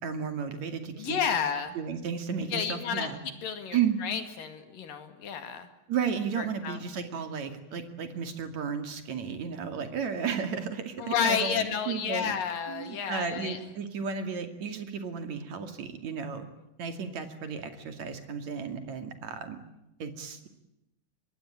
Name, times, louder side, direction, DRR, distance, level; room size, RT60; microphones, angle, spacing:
voice 1, 0.0-1.2 1.7-3.2 3.7-4.0 5.9-12.4 12.7-16.4 16.8-19.6 20.0-20.5, right 6 dB, 50° right, 8 dB, 3.3 m, -33 dB
voice 2, 1.0-1.8 2.5-5.7 6.4-6.8 11.0-13.6, left 7 dB, 60° left, 9 dB, 3.7 m, -31 dB
25.0 x 22.0 x 8.9 m, 0.87 s
omnidirectional pair, 4.6 m